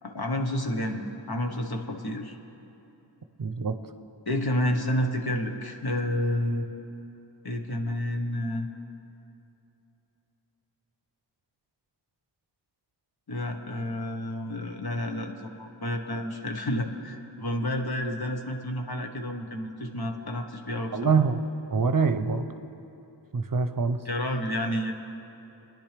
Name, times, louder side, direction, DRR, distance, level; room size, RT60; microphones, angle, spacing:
voice 1, 0.0-1.0 1.3-2.4 4.3-6.7 7.4-8.7 13.3-21.2 24.0-24.9, left 1 dB, 55° left, 3 dB, 1.3 m, -30 dB
voice 2, 3.4-3.8 20.9-21.4 21.7-22.5 23.3-24.0, right 5 dB, 50° right, 9 dB, 0.7 m, -24 dB
27.0 x 10.5 x 3.4 m, 2.9 s
wide cardioid pair, 55°, 44 cm